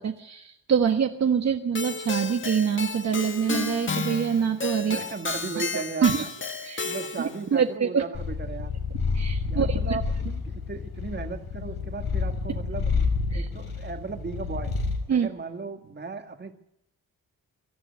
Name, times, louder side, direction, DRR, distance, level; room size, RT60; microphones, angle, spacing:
voice 1, 0.0-5.0 5.7-6.2 6.6-6.8 7.2-8.0 9.1-10.0 13.3-13.5 15.1-15.3, right 7 dB, 45° right, 5 dB, 1.4 m, -25 dB
Keyboard (musical), 1.8-7.4, left 4 dB, 35° left, 1.8 m, -32 dB
voice 2, 4.8-6.3 6.8-8.8 9.4-12.9 13.3-14.7 15.1-16.5, right 4 dB, 30° right, 6 dB, 1.9 m, -36 dB
Purr, 8.1-15.1, left 4 dB, 85° left, 5.4 m, -29 dB
25.0 x 14.0 x 9.5 m, 0.84 s
wide cardioid pair, 170°, 36 cm